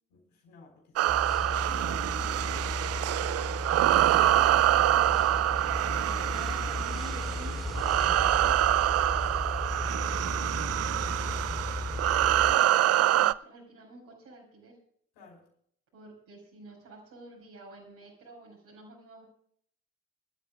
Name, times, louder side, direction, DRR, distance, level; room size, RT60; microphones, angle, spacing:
voice 1, 0.1-1.5 1.9-2.0 3.1-4.3 5.9-6.5 15.1-15.4, left 3 dB, 70° left, 2 dB, 4.9 m, -54 dB
sound 1, 1.0-13.3, right 13 dB, 45° right, 0.5 m, -26 dB
sound 2, 1.1-12.5, left 2 dB, ahead, 4.2 m, -35 dB
voice 2, 5.0-5.4 6.2-9.1 12.1-14.8 15.9-19.2, right 2 dB, 65° right, -5 dB, 5.5 m, -50 dB
26.5 x 13.0 x 2.5 m, 0.63 s
figure-of-eight pair, 40°, 35 cm